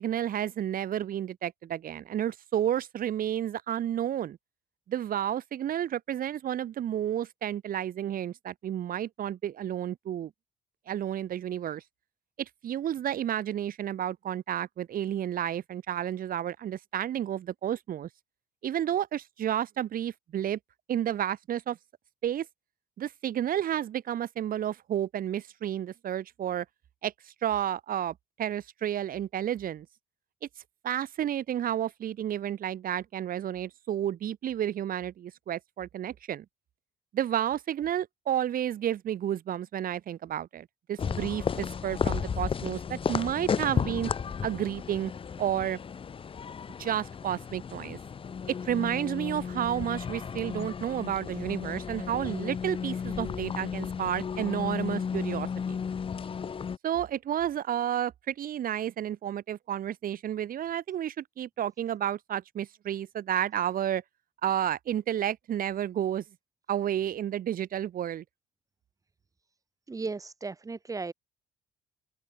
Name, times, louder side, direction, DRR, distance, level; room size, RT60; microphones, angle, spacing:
voice 1, 0.0-4.4 4.9-10.3 10.9-11.8 12.4-18.1 18.6-20.6 20.9-21.8 22.2-22.5 23.0-26.6 27.0-27.1 27.4-29.9 30.8-36.4 37.1-44.1 44.4-45.1 45.4-45.8 46.8-48.0 48.5-55.8 56.8-64.0 64.4-66.2 66.7-68.2, right 10 dB, 55° right, 6.5 m, -31 dB
sound 1, 41.0-56.8, left 6 dB, 30° left, 1.2 m, -34 dB
voice 2, 69.9-71.1, right 4 dB, 20° right, 1.8 m, -35 dB
open air
cardioid pair, 110°, 17 cm